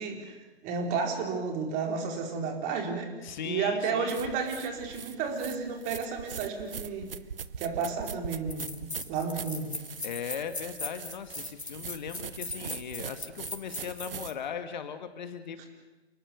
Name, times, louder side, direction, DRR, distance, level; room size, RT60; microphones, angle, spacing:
voice 1, 0.0-3.1 3.4-7.1 7.6-9.8 15.6-15.7, right 5 dB, 25° right, 3 dB, 4.3 m, -32 dB
voice 2, 3.2-4.2 10.0-15.6, left 7 dB, 45° left, 9 dB, 2.0 m, -38 dB
sound 1, 4.1-14.3, right 7 dB, 60° right, 1.3 m, -42 dB
sound 2, 7.9-8.0 8.5-14.4, left 2 dB, 85° left, 3.9 m, -39 dB
29.0 x 19.5 x 7.1 m, 1.1 s
figure-of-eight pair, 130°, 32 cm